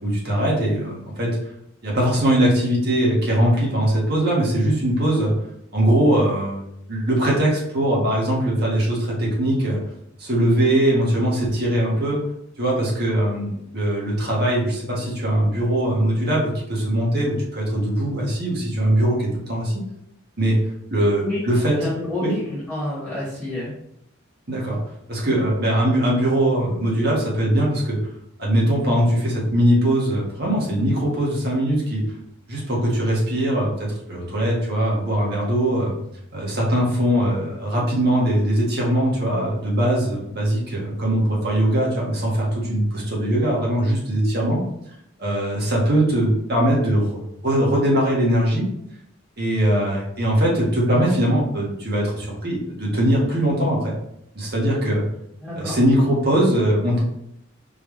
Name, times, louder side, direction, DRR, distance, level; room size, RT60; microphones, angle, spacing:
voice 1, 0.0-1.4 1.8-5.3 5.7-9.8 10.2-12.2 12.6-19.8 20.4-20.6 20.9-21.8 22.2-22.3 24.5-24.8 25.1-28.0 28.4-32.0 32.5-36.0 36.3-44.6 45.2-48.7 49.4-53.9 54.3-55.0 55.6-57.0, right 1 dB, 50° right, -4 dB, 1.5 m, -21 dB
voice 2, 20.9-21.4 21.8-23.7 55.4-55.8, left 1 dB, ahead, -8 dB, 1.5 m, -29 dB
4.5 x 3.4 x 3.2 m, 0.78 s
head